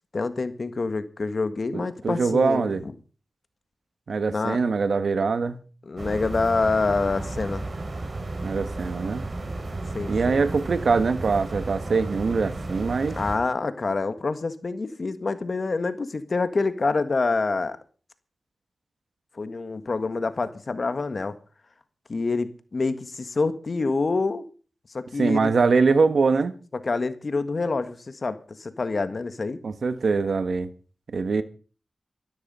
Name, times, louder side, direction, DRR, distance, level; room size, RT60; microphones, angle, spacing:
voice 1, 0.1-2.9 4.3-4.6 5.8-7.7 9.9-10.4 13.2-17.8 19.3-21.3 22.1-24.4 24.9-25.5 26.8-29.6, left 3 dB, 60° left, 1.6 m, -27 dB
voice 2, 1.7-2.8 4.1-5.6 8.4-9.2 10.1-13.2 25.2-26.5 29.6-30.7 31.1-31.4, right 4 dB, 80° right, 1.4 m, -23 dB
sound 1, 6.0-13.4, right 2 dB, 55° right, 4.0 m, -33 dB
13.0 x 13.0 x 5.5 m
cardioid pair, 50°, 0 cm